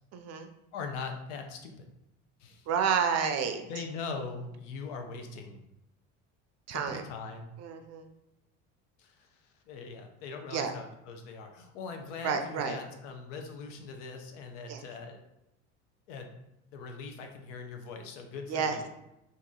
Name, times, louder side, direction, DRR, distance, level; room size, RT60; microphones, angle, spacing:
voice 1, 0.1-0.5 2.7-3.8 6.7-7.0 7.6-8.1 10.5-10.7 12.2-12.8 14.7-14.8 18.5-18.8, right 6 dB, 45° right, 7 dB, 0.5 m, -30 dB
voice 2, 0.7-1.9 2.4-2.6 3.7-5.6 6.7-7.5 9.0-9.3 9.7-15.2 16.1-16.4 16.7-18.9, left 4 dB, 85° left, 4 dB, 0.7 m, -41 dB
2.9 x 2.6 x 3.7 m, 0.87 s
supercardioid pair, 105°, 36 cm